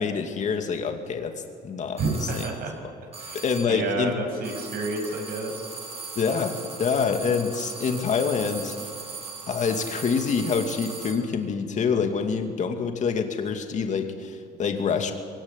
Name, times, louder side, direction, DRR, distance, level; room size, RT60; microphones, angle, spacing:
voice 1, 0.0-2.4 3.3-4.1 6.2-8.8 9.5-15.1, left 5 dB, 45° left, 5 dB, 2.4 m, -26 dB
sound 1, 2.0-2.7 3.1-3.9 4.4-11.3, right 4 dB, 35° right, 4.3 m, -39 dB
voice 2, 2.0-2.7 3.2-5.7, right 2 dB, 60° right, 1 dB, 7.1 m, -30 dB
22.0 x 18.0 x 9.9 m, 2.1 s
cardioid pair, 110°, 17 cm